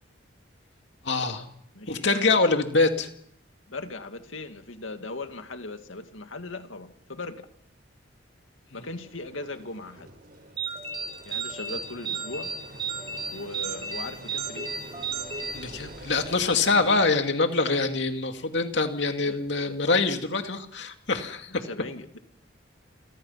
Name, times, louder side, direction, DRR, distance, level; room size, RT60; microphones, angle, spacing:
voice 1, 1.0-1.4 1.9-3.1 15.5-21.6, left 3 dB, 65° left, 5 dB, 2.5 m, -24 dB
voice 2, 1.7-2.1 3.7-7.5 8.7-10.1 11.2-12.5 13.3-14.7 19.3-19.8 21.6-22.2, left 2 dB, 80° left, 7 dB, 2.3 m, -38 dB
Engine, 8.8-17.2, right 1 dB, 50° right, 6.5 m, -46 dB
sound 1, 10.6-16.3, right 5 dB, 25° right, 3.7 m, -34 dB
29.0 x 22.0 x 5.9 m, 0.70 s
head